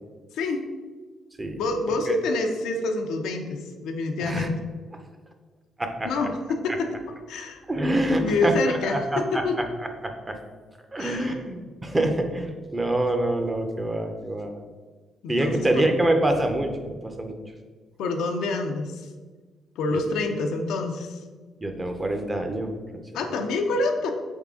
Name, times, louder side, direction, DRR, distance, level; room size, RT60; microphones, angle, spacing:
voice 1, 0.3-0.6 1.6-4.6 6.0-6.9 7.3-7.6 8.2-9.6 11.0-11.4 15.2-15.9 18.0-19.1 19.8-21.2 23.1-24.1, left 3 dB, 85° left, 4 dB, 0.5 m, -27 dB
voice 2, 7.7-9.4 10.0-10.4 10.9-14.5 15.3-17.3 19.9-20.0 21.6-23.0, right 1 dB, 20° right, 5 dB, 0.6 m, -26 dB
4.0 x 3.6 x 3.6 m, 1.4 s
cardioid pair, 90°, 0 cm